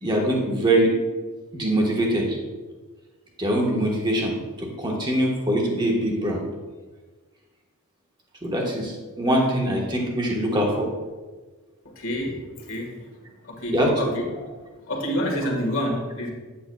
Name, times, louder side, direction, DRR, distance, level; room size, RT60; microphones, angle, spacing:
voice 1, 0.0-0.9 1.5-2.4 3.4-6.4 8.4-10.9 13.7-14.1, right 1 dB, 20° right, -1 dB, 1.3 m, -23 dB
voice 2, 11.8-12.9 13.5-14.5 14.9-16.3, equal, 65° left, 0 dB, 1.6 m, -28 dB
9.4 x 8.6 x 2.3 m, 1.3 s
head